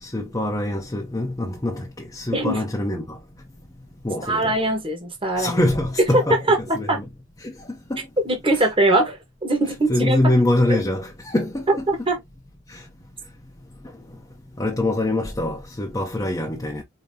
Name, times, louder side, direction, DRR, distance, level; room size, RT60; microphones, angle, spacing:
voice 1, 0.0-3.2 4.0-4.6 5.4-7.1 7.4-8.0 8.5-8.7 9.9-11.9 12.7-12.8 14.6-16.8, left 1 dB, 15° left, 0.7 m, -24 dB
voice 2, 4.3-5.6 6.1-6.2 6.5-7.0 8.2-10.2 11.9-12.2, right 2 dB, 25° right, 1.3 m, -21 dB
4.9 x 2.9 x 2.7 m
head